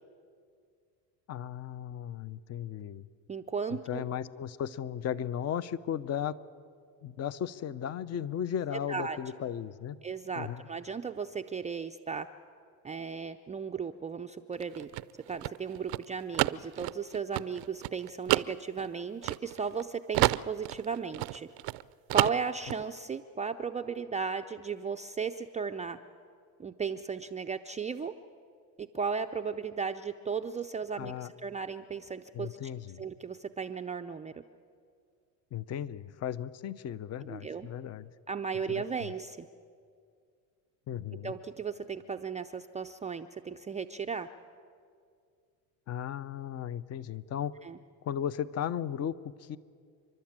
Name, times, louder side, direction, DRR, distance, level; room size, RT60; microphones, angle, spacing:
voice 1, 1.3-3.1 3.7-6.4 7.0-10.0 10.4-10.6 31.0-31.3 32.3-33.1 35.5-38.1 38.7-39.1 40.9-41.3 45.9-47.5 48.0-49.6, left 9 dB, 35° left, 17 dB, 0.7 m, -36 dB
voice 2, 3.3-4.0 8.9-9.2 10.0-12.3 12.8-14.9 15.3-21.5 22.1-26.0 26.6-28.1 28.8-32.6 33.0-34.4 37.2-37.7 38.3-39.5 41.2-44.3 47.6-47.8, right 5 dB, 15° right, 5 dB, 0.4 m, -35 dB
sound 1, 14.5-19.8 20.1-21.8 22.1-22.8, right 21 dB, 65° right, 0.6 m, -30 dB
29.5 x 12.0 x 8.8 m, 2.2 s
cardioid pair, 120°, 42 cm